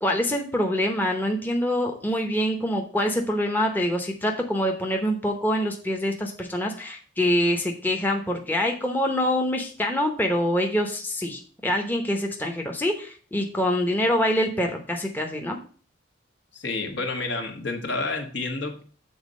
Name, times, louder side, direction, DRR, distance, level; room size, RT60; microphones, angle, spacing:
voice 1, 0.0-15.6, equal, 10° left, 2 dB, 0.9 m, -25 dB
voice 2, 16.5-18.8, left 3 dB, 65° left, 4 dB, 1.5 m, -29 dB
7.2 x 4.1 x 6.3 m, 0.41 s
head